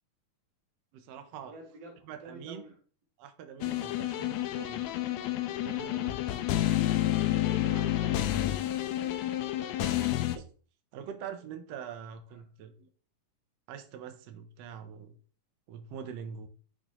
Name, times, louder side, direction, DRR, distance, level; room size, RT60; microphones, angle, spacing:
voice 1, 0.9-1.5 2.0-2.6 3.2-4.8 5.6-6.2 7.5-8.1 9.7-10.4 10.9-12.9 13.7-15.2 15.7-16.5, right 8 dB, 80° right, 6 dB, 1.4 m, -44 dB
voice 2, 1.5-2.7 5.7-6.9 7.2-8.0 8.9-9.3 12.3-12.4, right 1 dB, 55° right, 0 dB, 2.7 m, -49 dB
sound 1, 3.6-10.4, left 14 dB, 85° left, 1.6 m, -29 dB
10.5 x 4.1 x 2.9 m, 0.40 s
omnidirectional pair, 3.8 m